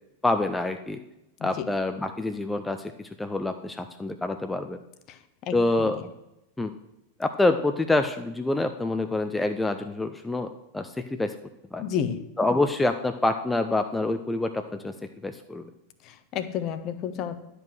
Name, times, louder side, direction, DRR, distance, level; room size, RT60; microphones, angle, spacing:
voice 1, 0.2-1.0 1.4-4.8 5.5-6.0 6.6-6.7 7.2-11.3 11.7-11.8 12.4-14.9 15.2-15.6, left 2 dB, 5° left, 7 dB, 0.5 m, -26 dB
voice 2, 5.1-6.0 11.8-12.2 16.0-17.4, left 8 dB, 35° left, 11 dB, 0.8 m, -32 dB
10.5 x 5.2 x 6.3 m, 0.89 s
figure-of-eight pair, 90°, 0 cm